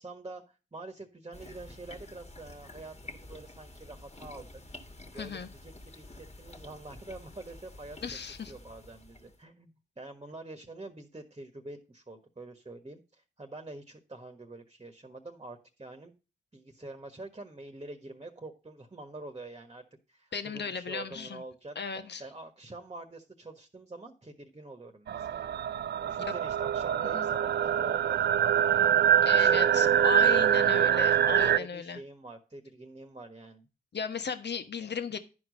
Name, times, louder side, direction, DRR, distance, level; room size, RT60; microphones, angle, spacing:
voice 1, 0.0-4.5 5.1-8.2 8.5-16.2 16.5-21.7 22.2-25.5 26.0-28.9 29.3-33.7, right 2 dB, 25° right, 5 dB, 1.4 m, -45 dB
sound 1, 1.3-9.4, left 2 dB, 30° left, 1.8 m, -49 dB
voice 2, 5.1-5.5 8.0-8.5 20.3-21.4 21.7-22.2 26.2-26.4 27.0-27.3 29.2-32.0 33.9-35.2, left 6 dB, 55° left, 8 dB, 1.2 m, -36 dB
sound 2, 25.1-31.6, right 9 dB, 55° right, 0.4 m, -24 dB
10.5 x 4.7 x 5.2 m, 0.32 s
supercardioid pair, 40°, 21 cm